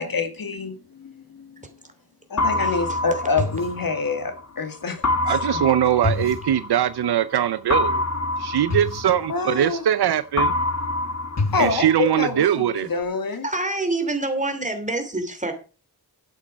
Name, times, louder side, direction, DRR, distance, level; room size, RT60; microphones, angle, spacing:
voice 1, 0.0-1.6 2.3-5.6 9.3-9.8 11.5-13.5, left 4 dB, 65° left, 8 dB, 2.2 m, -27 dB
sound 1, 2.4-4.4 5.0-7.1 7.7-10.0 10.4-12.4, left 2 dB, 45° left, 1.3 m, -26 dB
voice 2, 2.6-3.0 13.4-15.5, right 2 dB, 20° right, 6 dB, 2.9 m, -26 dB
voice 3, 5.3-8.0 8.4-10.5 11.6-12.9, right 10 dB, 90° right, 14 dB, 0.6 m, -21 dB
11.5 x 8.5 x 5.2 m, 0.36 s
wide cardioid pair, 115°, 38 cm